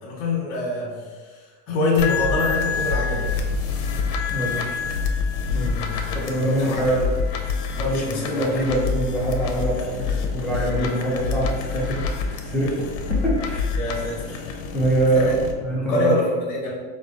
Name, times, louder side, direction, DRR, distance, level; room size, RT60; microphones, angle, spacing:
voice 1, 0.0-3.3 5.5-7.0 7.7-8.6 13.8-14.4 15.1-15.3 15.8-16.7, left 2 dB, 65° left, -5 dB, 1.3 m, -26 dB
sound 1, 2.0-15.5, left 5 dB, 80° left, 0.8 m, -27 dB
voice 2, 4.3-4.8 5.5-5.7 6.1-7.1 7.8-12.0 12.4-12.9 13.2-13.7 14.7-15.3 15.6-16.2, right 1 dB, ahead, -7 dB, 0.5 m, -24 dB
5.1 x 2.3 x 3.8 m, 1.4 s
cardioid pair, 170°, 43 cm